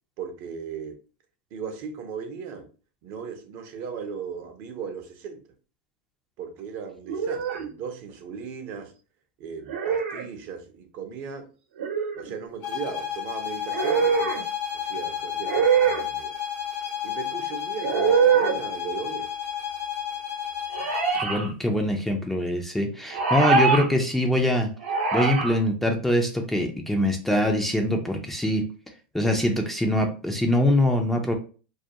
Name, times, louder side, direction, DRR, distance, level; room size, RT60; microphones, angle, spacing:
voice 1, 0.2-1.0 1.5-2.7 3.0-5.4 6.4-8.9 9.4-11.5 12.1-14.5 14.7-16.3 17.0-19.3, right 6 dB, 50° right, 0.5 m, -37 dB
sound 1, 7.1-7.7 9.7-10.2 11.8-12.3 13.7-14.4 15.4-16.0 17.8-18.6 20.7-21.5 23.1-23.9 24.8-25.5, right 5 dB, 80° right, 0.8 m, -23 dB
sound 2, 12.6-21.3, left 9 dB, 45° left, 0.6 m, -32 dB
voice 2, 20.8-24.7 25.1-28.6 29.1-31.3, left 1 dB, 5° left, 0.4 m, -24 dB
2.3 x 2.2 x 2.7 m
hypercardioid pair, 120°, 6 cm